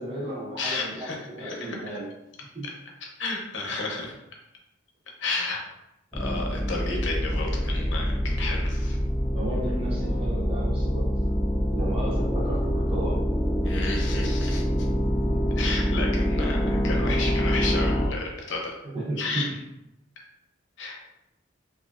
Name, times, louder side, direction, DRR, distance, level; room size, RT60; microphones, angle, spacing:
voice 1, 0.0-2.1 2.5-2.7 9.3-11.1 11.7-13.3 18.8-19.6, right 1 dB, 30° right, -6 dB, 0.6 m, -33 dB
voice 2, 0.6-2.0 2.6-2.7 3.0-4.1 5.2-5.6 6.1-9.0 13.6-14.9 15.6-18.7 19.2-19.5 20.2-20.3 20.8-21.0, left 3 dB, 70° left, 0 dB, 0.6 m, -32 dB
sound 1, 6.1-18.1, equal, 5° left, 0.3 m, -25 dB
3.0 x 2.3 x 2.3 m, 0.91 s
head